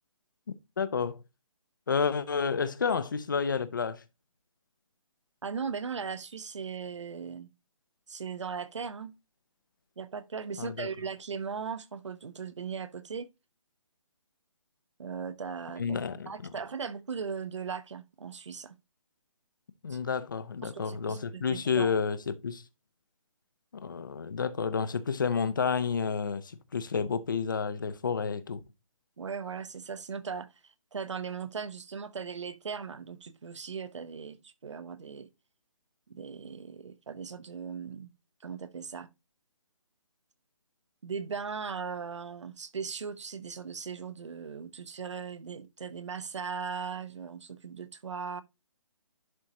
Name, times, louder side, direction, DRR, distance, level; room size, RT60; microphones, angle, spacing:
voice 1, 0.5-1.2 1.9-4.0 10.6-10.9 15.8-16.3 19.8-22.6 23.7-28.6, left 5 dB, 35° left, 0.7 m, -30 dB
voice 2, 5.4-7.5 8.1-9.1 10.0-13.3 15.0-15.8 16.1-18.7 19.9-20.0 20.6-21.9 29.2-35.3 36.1-38.1 38.4-39.1 41.0-48.4, right 6 dB, 60° right, 0.9 m, -38 dB
11.0 x 4.1 x 2.9 m
hypercardioid pair, 175°, 17 cm